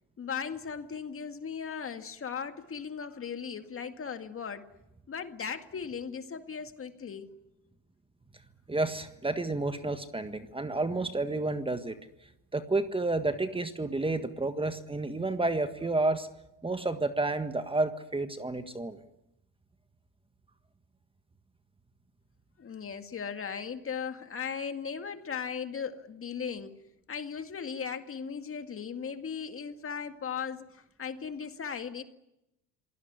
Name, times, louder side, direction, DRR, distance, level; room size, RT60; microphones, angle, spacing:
voice 1, 0.2-4.7 5.1-7.3 22.6-26.8 27.1-32.0, left 6 dB, 35° left, 8 dB, 2.1 m, -37 dB
voice 2, 8.7-11.9 12.5-16.3 16.6-19.0, right 2 dB, 15° right, 9 dB, 1.6 m, -30 dB
26.5 x 18.0 x 9.7 m, 0.87 s
supercardioid pair, 90°, 38 cm